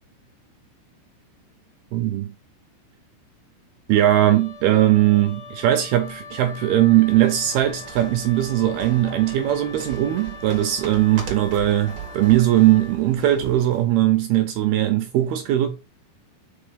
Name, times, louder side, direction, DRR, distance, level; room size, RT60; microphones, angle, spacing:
voice 1, 1.9-2.3 3.9-15.7, right 13 dB, 75° right, 2.4 m, -19 dB
Wind instrument woodwind instrument, 3.9-13.0, left 5 dB, 35° left, 2.1 m, -42 dB
sound 1, 6.7-13.9, right 6 dB, 50° right, 1.5 m, -39 dB
5.8 x 5.7 x 5.2 m
omnidirectional pair, 5.4 m